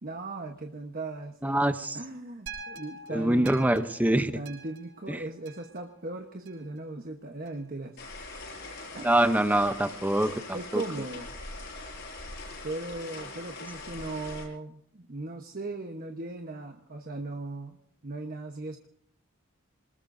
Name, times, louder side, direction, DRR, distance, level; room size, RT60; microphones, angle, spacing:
voice 1, 0.0-1.6 1.9-3.8 4.3-8.0 8.9-9.3 10.5-11.3 12.6-17.8 18.0-18.9, right 2 dB, 45° right, 4 dB, 1.1 m, -38 dB
voice 2, 1.4-2.0 3.1-4.3 5.1-5.2 9.0-10.8, right 1 dB, 10° right, 10 dB, 0.7 m, -25 dB
sound 1, 2.5-6.8 7.5-7.6, right 4 dB, 65° right, 7.2 m, -46 dB
sound 2, 8.0-14.5, left 2 dB, 60° left, 8.0 m, -42 dB
26.5 x 20.0 x 2.6 m, 0.70 s
head